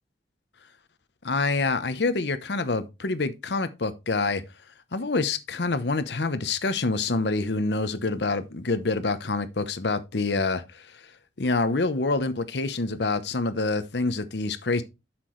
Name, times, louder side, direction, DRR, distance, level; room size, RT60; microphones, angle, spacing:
voice 1, 1.2-4.4 4.9-10.8 11.4-14.8, left 3 dB, 70° left, 0.9 m, -26 dB
8.1 x 6.0 x 3.2 m
head